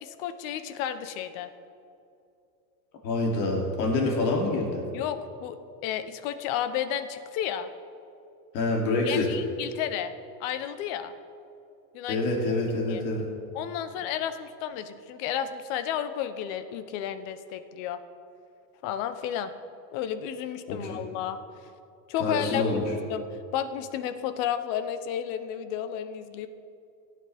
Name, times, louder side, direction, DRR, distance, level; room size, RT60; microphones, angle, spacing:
voice 1, 0.0-1.5 4.9-7.7 9.0-10.1 10.4-11.1 11.9-12.2 12.9-13.0 13.5-18.0 18.8-19.5 19.9-21.4 22.1-22.8 23.1-23.2 23.5-26.5, left 10 dB, 50° left, 11 dB, 0.8 m, -32 dB
voice 2, 3.0-4.8 8.5-9.3 12.1-13.2 20.7-20.8 22.2-22.8, left 2 dB, 90° left, -1 dB, 3.0 m, -26 dB
17.5 x 9.4 x 3.5 m, 2.6 s
supercardioid pair, 145°, 49 cm